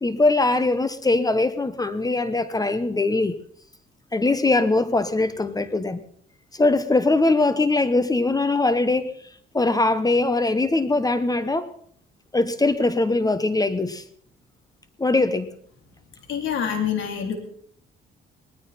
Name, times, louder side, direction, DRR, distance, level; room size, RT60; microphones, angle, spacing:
voice 1, 0.0-3.4 4.1-6.0 6.5-9.1 9.5-11.7 12.3-14.0 15.0-15.5, left 2 dB, 20° left, 13 dB, 1.0 m, -21 dB
voice 2, 16.3-17.3, left 8 dB, 75° left, 3 dB, 3.4 m, -26 dB
19.0 x 13.5 x 4.2 m, 0.63 s
cardioid pair, 90°, 20 cm